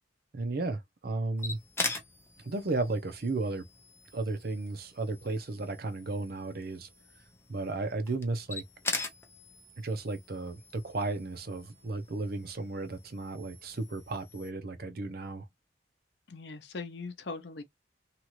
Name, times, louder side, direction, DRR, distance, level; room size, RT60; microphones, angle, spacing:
voice 1, 0.3-1.6 2.4-3.6 4.1-6.9 7.5-8.6 9.8-15.5, right 2 dB, 55° right, 0.6 m, -34 dB
sound 1, 1.4-14.5, left 3 dB, 15° left, 0.6 m, -42 dB
voice 2, 16.3-17.6, left 3 dB, 60° left, 0.6 m, -40 dB
2.9 x 2.4 x 3.0 m
head